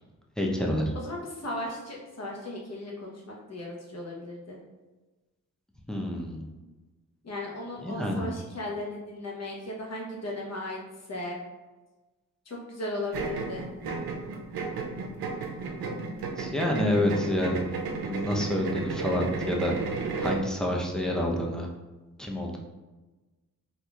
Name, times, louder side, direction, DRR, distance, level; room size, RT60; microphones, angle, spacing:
voice 1, 0.4-0.9 5.9-6.5 7.8-8.3 15.9-16.0 16.4-17.6 18.0-19.7 20.2-21.7 22.2-22.6, left 1 dB, ahead, -1 dB, 0.7 m, -28 dB
voice 2, 0.9-4.6 7.2-10.8 11.1-11.4 12.4-13.7, left 1 dB, 45° left, -2 dB, 1.0 m, -36 dB
sound 1, 13.1-20.5, right 4 dB, 90° right, 0.5 m, -33 dB
4.1 x 2.8 x 2.4 m, 1.2 s
cardioid pair, 55°, 36 cm